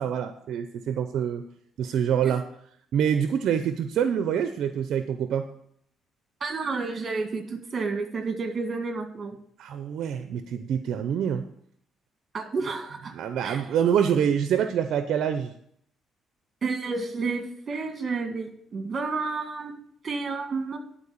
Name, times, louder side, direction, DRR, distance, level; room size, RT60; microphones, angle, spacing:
voice 1, 0.0-1.4 1.8-2.5 2.9-5.5 9.6-11.5 13.1-15.5, right 8 dB, 75° right, 9 dB, 0.6 m, -26 dB
voice 2, 6.4-9.4 12.3-13.1 13.4-13.6 16.6-19.7 20.0-20.8, right 4 dB, 40° right, 6 dB, 1.8 m, -30 dB
11.0 x 4.4 x 6.9 m, 0.68 s
cardioid pair, 90°, 0 cm